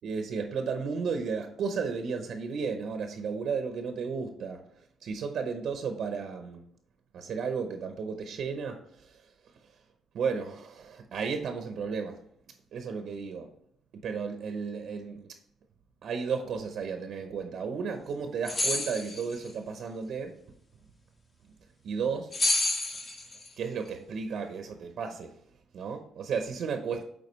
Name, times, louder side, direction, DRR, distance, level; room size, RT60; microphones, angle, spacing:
voice 1, 0.0-4.6 5.0-6.6 7.1-9.2 10.1-12.2 12.7-13.5 13.9-15.3 16.0-20.4 21.8-22.4 23.6-25.3 25.7-27.0, right 5 dB, 70° right, 6 dB, 0.7 m, -33 dB
sound 1, 18.5-19.3 22.3-23.5, left 2 dB, 35° left, 1.3 m, -28 dB
8.4 x 3.7 x 3.1 m, 0.69 s
cardioid pair, 90°, 0 cm